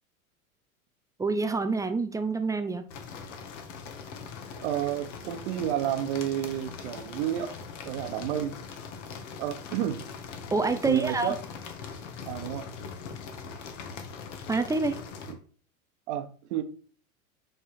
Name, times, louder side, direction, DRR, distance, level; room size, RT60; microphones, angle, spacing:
voice 1, 1.2-2.8 10.5-11.3 14.5-15.0, right 3 dB, 10° right, 0.6 m, -27 dB
sound 1, 2.9-15.3, left 6 dB, 55° left, 2.0 m, -41 dB
voice 2, 4.6-7.5 7.8-8.6 9.4-10.0 10.9-11.3 12.3-12.7 16.1-16.6, right 11 dB, 50° right, 1.3 m, -31 dB
9.1 x 4.8 x 4.5 m
figure-of-eight pair, 90°, 44 cm